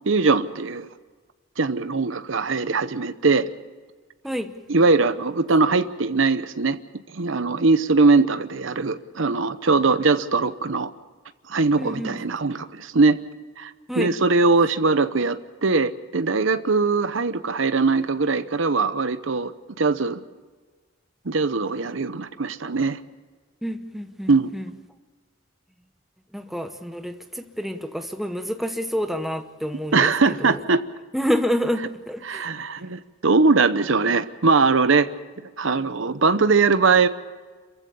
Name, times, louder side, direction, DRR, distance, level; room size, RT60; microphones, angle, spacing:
voice 1, 0.1-0.9 1.6-3.5 4.7-6.8 7.1-10.9 11.5-13.2 13.6-13.7 14.0-19.5 19.8-20.2 21.3-23.0 24.3-24.5 29.9-30.8 32.3-35.1 35.6-37.1, right 4 dB, 70° right, 12 dB, 0.9 m, -21 dB
voice 2, 11.8-12.2 13.9-14.1 23.6-24.6 26.3-30.1 30.4-30.6 31.1-32.5, equal, ahead, 6 dB, 0.9 m, -28 dB
27.0 x 15.5 x 6.9 m, 1.4 s
head